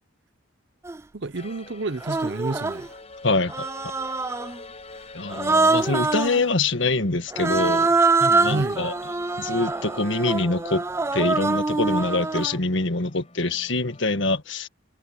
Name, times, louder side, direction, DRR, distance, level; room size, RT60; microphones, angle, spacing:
Human voice, 0.8-1.0 2.0-2.9 3.5-4.6 5.3-6.4 7.3-12.6, right 3 dB, 15° right, 0.4 m, -24 dB
voice 1, 1.1-2.9 8.4-8.8, right 2 dB, 60° right, 0.9 m, -29 dB
sound 1, 1.3-14.1, left 3 dB, 30° left, 6.7 m, -47 dB
voice 2, 3.2-3.7 5.1-8.9 9.4-10.8 11.1-14.7, left 2 dB, 65° left, 1.6 m, -25 dB
head